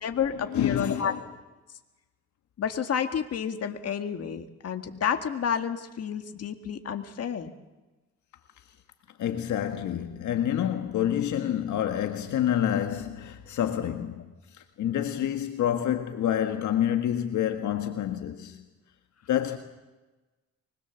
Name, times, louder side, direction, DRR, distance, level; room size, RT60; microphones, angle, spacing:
voice 1, 0.0-1.2 2.6-7.5, left 7 dB, 55° left, 2.0 m, -30 dB
voice 2, 0.5-1.2 9.2-14.2 14.8-18.6 19.3-19.6, left 10 dB, 75° left, 1.7 m, -28 dB
24.5 x 21.0 x 7.2 m
cardioid pair, 90°, 30 cm